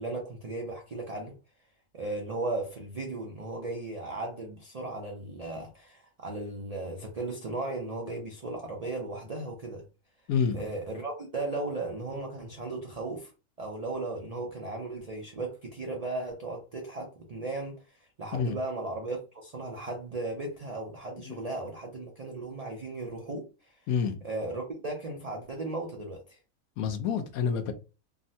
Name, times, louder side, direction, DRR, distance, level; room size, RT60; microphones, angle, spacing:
voice 1, 0.0-1.3 1.9-9.8 10.5-13.3 13.6-23.8 24.2-26.4, right 2 dB, 85° right, 0.3 m, -36 dB
voice 2, 10.3-10.6 18.3-18.6 21.2-21.3 23.9-24.2 26.8-27.7, left 6 dB, 85° left, 1.0 m, -28 dB
3.5 x 2.1 x 2.6 m
omnidirectional pair, 1.5 m